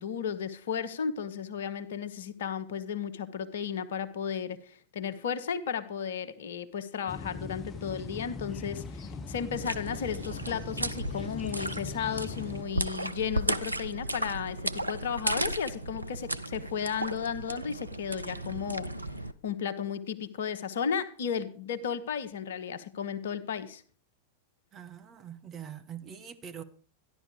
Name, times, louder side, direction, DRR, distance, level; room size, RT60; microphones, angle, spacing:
voice 1, 0.0-18.9 19.4-23.8, left 7 dB, 60° left, 1.0 m, -34 dB
sound 1, 7.1-12.6, left 4 dB, 25° left, 0.9 m, -40 dB
sound 2, 9.5-19.3, right 1 dB, 85° right, 0.6 m, -35 dB
voice 2, 24.7-26.6, right 8 dB, 30° right, 1.4 m, -43 dB
14.0 x 11.0 x 4.9 m
figure-of-eight pair, 90°, 0 cm